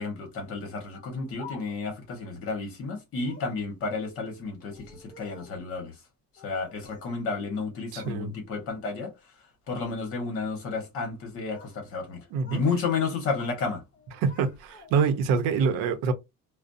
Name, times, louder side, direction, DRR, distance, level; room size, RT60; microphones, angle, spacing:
voice 1, 0.0-5.9 6.4-9.1 9.7-12.2 12.5-13.8, left 4 dB, 45° left, 1.0 m, -31 dB
Speech, 0.9-2.0 3.2-3.6 4.6-5.7 6.4-7.2 7.5-8.2 8.6-9.0 9.6-10.0 11.1-11.8 12.1-12.7 13.0-13.6 13.9-15.2, left 4 dB, 25° left, 0.7 m, -50 dB
voice 2, 7.9-8.4 12.3-12.6 14.2-16.1, right 5 dB, 90° right, 0.7 m, -25 dB
2.5 x 2.0 x 2.6 m
cardioid pair, 165°, 32 cm